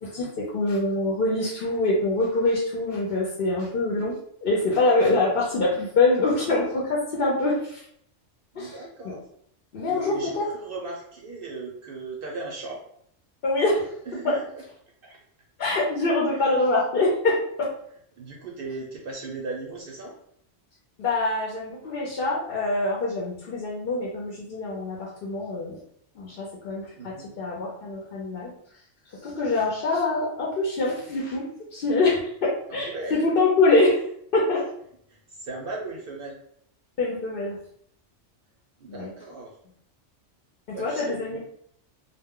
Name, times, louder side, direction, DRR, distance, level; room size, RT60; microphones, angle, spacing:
voice 1, 0.0-7.8 8.6-8.8 9.7-10.4 13.4-13.9 14.2-14.3 15.6-17.7 21.0-25.8 26.2-28.5 29.2-31.5 31.7-34.0 34.3-34.7 37.0-37.6 38.9-39.1 40.7-41.4, left 2 dB, 60° left, -4 dB, 0.8 m, -24 dB
voice 2, 8.5-9.2 9.8-12.8 14.1-14.6 15.0-15.2 16.3-16.5 18.2-20.2 27.0-27.3 32.7-33.3 35.1-36.4 38.8-39.6 40.7-41.4, right 3 dB, 60° right, -1 dB, 0.7 m, -37 dB
2.2 x 2.1 x 3.5 m, 0.67 s
omnidirectional pair, 1.2 m